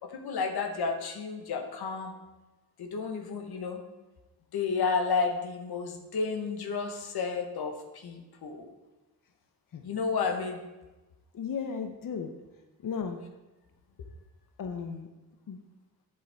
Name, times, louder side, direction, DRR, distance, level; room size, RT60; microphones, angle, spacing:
voice 1, 0.0-2.1 2.8-3.8 4.5-8.7 9.8-10.6, left 5 dB, 90° left, 3 dB, 1.1 m, -31 dB
voice 2, 11.3-12.3 12.8-13.2 14.6-15.1 15.5-15.6, left 6 dB, 60° left, 5 dB, 0.8 m, -35 dB
8.3 x 7.5 x 3.4 m, 1.1 s
cardioid pair, 90°, 37 cm